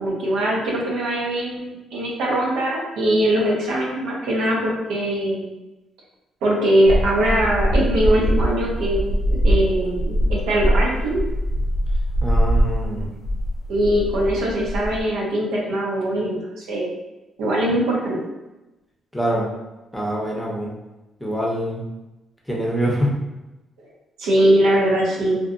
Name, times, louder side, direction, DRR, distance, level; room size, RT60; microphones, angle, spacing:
voice 1, 0.0-5.5 6.4-9.0 9.3-11.2 13.7-17.0 17.4-18.2 24.2-25.4, right 1 dB, 90° right, -4 dB, 0.7 m, -21 dB
sound 1, 6.9-15.0, equal, 60° left, 0.5 m, -22 dB
voice 2, 12.2-13.1 19.1-19.5 19.9-20.7 21.2-21.9 22.5-23.2, right 1 dB, 5° left, -3 dB, 0.7 m, -24 dB
2.6 x 2.2 x 2.5 m, 1.0 s
cardioid pair, 90°, 0 cm